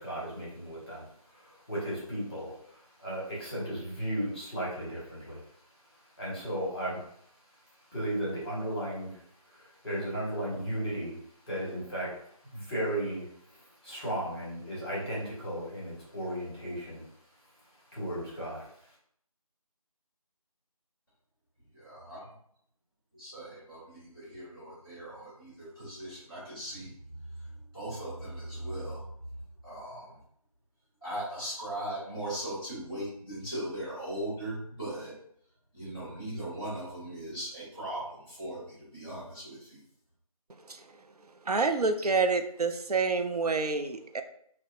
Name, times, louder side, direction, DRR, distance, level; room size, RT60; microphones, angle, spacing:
voice 1, 0.0-5.4 6.2-7.1 7.9-9.2 9.5-11.2 11.5-12.2 12.5-17.1 17.9-18.7, right 1 dB, 15° left, -7 dB, 0.9 m, -35 dB
voice 2, 21.7-22.3 23.1-29.1 29.6-30.2 31.0-35.1 35.7-39.8, right 1 dB, 5° right, -10 dB, 1.4 m, -39 dB
voice 3, 41.5-44.2, right 4 dB, 90° right, 7 dB, 0.4 m, -28 dB
4.3 x 2.1 x 2.4 m, 0.67 s
figure-of-eight pair, 170°, 19 cm